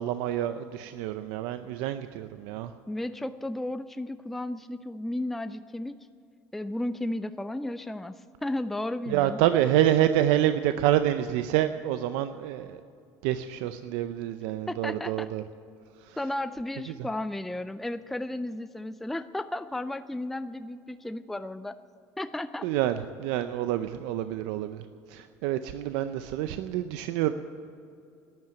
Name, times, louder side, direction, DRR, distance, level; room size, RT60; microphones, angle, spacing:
voice 1, 0.0-2.7 9.1-12.8 13.2-15.4 16.1-16.2 22.6-27.3, right 12 dB, 80° right, 10 dB, 0.5 m, -27 dB
voice 2, 2.9-6.0 6.5-8.1 8.4-9.4 14.7-15.3 16.2-21.8 22.2-22.7, left 1 dB, 5° left, 11 dB, 0.3 m, -34 dB
12.0 x 10.5 x 9.7 m, 2.5 s
cardioid pair, 125°, 6 cm